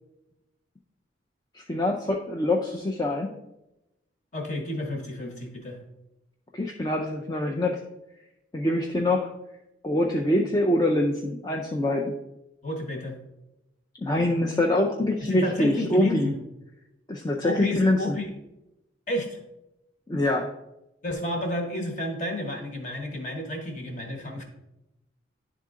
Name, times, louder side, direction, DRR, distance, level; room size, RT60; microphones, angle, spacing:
voice 1, 1.5-3.3 6.5-7.8 8.5-9.3 9.8-12.1 14.0-16.3 17.1-18.2 20.1-20.5, left 1 dB, 20° left, 1 dB, 0.4 m, -24 dB
voice 2, 4.3-5.8 12.6-13.2 15.2-16.4 17.4-18.3 19.1-19.4 21.0-24.4, left 1 dB, 40° left, 3 dB, 1.1 m, -31 dB
10.5 x 3.7 x 3.7 m, 0.92 s
head